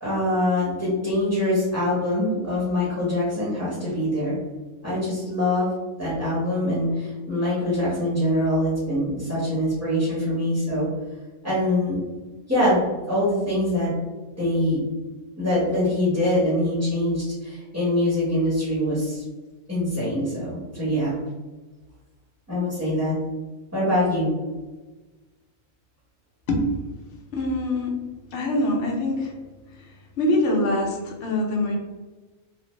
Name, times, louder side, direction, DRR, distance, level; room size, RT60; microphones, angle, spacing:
voice 1, 0.0-4.4 4.8-5.7 6.0-10.9 11.4-12.0 12.5-13.9 14.4-14.8 15.3-19.2 19.7-21.2 22.5-23.2 23.7-24.3, left 1 dB, 15° right, -9 dB, 0.9 m, -24 dB
voice 2, 27.3-28.0 28.3-29.3 29.8-31.8, left 1 dB, 65° left, -1 dB, 0.9 m, -24 dB
3.3 x 2.0 x 3.1 m, 1.2 s
omnidirectional pair, 1.4 m